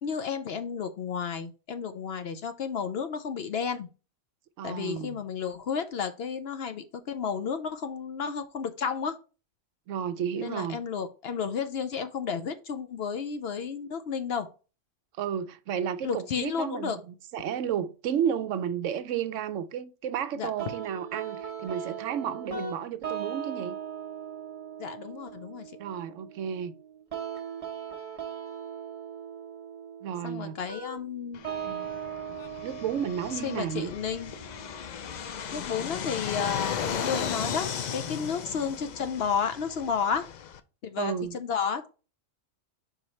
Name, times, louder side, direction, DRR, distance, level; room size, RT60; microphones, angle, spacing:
voice 1, 0.0-3.9 4.6-9.2 10.4-14.5 16.0-17.0 20.4-20.5 24.8-25.7 30.2-31.4 33.3-34.3 35.5-40.3 40.8-41.9, left 6 dB, 60° left, 0.7 m, -32 dB
voice 2, 4.6-5.2 9.9-10.8 15.2-23.8 25.8-26.7 30.0-30.6 31.6-31.9 32.6-33.9 41.0-41.4, right 8 dB, 75° right, 0.9 m, -32 dB
sound 1, 20.6-35.5, right 7 dB, 30° right, 0.9 m, -39 dB
Fixed-wing aircraft airplane, 31.3-40.6, left 7 dB, 85° left, 0.4 m, -36 dB
5.0 x 4.8 x 4.2 m
omnidirectional pair, 1.4 m